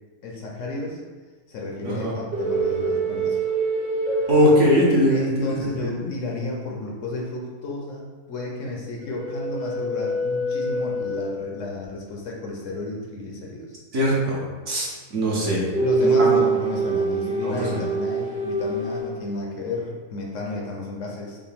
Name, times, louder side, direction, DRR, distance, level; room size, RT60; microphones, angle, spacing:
voice 1, 0.2-1.0 1.5-3.4 5.1-13.8 15.8-21.4, left 2 dB, 65° left, -1 dB, 0.9 m, -32 dB
sound 1, 2.3-5.5 9.0-11.6 15.7-19.5, right 3 dB, 40° right, 0.9 m, -25 dB
voice 2, 4.3-5.5 5.8-6.1 13.9-15.6 16.0-16.4 17.4-17.8, equal, 55° right, -5 dB, 1.2 m, -21 dB
5.3 x 2.2 x 3.4 m, 1.4 s
omnidirectional pair, 1.5 m